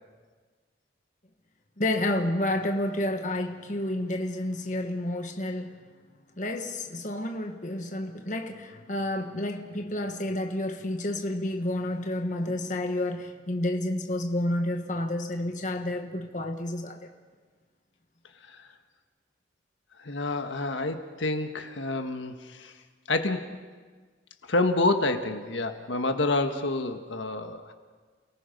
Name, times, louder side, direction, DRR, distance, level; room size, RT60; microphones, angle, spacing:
voice 1, 1.8-5.8 6.4-17.1, left 1 dB, 40° left, 5 dB, 1.3 m, -30 dB
voice 2, 20.0-22.7 23.1-23.6 24.5-27.7, left 2 dB, 80° left, 6 dB, 1.5 m, -28 dB
29.0 x 19.0 x 5.3 m, 1.5 s
head